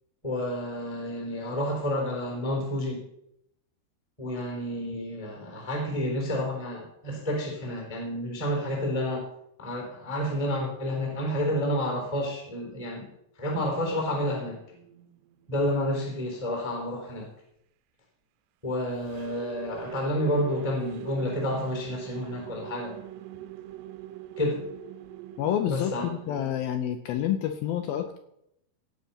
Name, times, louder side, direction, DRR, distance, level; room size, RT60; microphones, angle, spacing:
voice 1, 0.2-3.0 4.2-9.2 9.6-13.1 13.4-14.6 15.5-17.3 18.6-22.9 24.4-24.6 25.7-26.4, left 1 dB, 10° left, 0 dB, 3.0 m, -30 dB
sound 1, 14.0-15.8 18.9-26.5, right 13 dB, 85° right, 2.9 m, -43 dB
voice 2, 25.4-28.2, left 10 dB, 75° left, 7 dB, 2.2 m, -28 dB
17.0 x 6.5 x 5.8 m, 0.77 s
omnidirectional pair, 5.0 m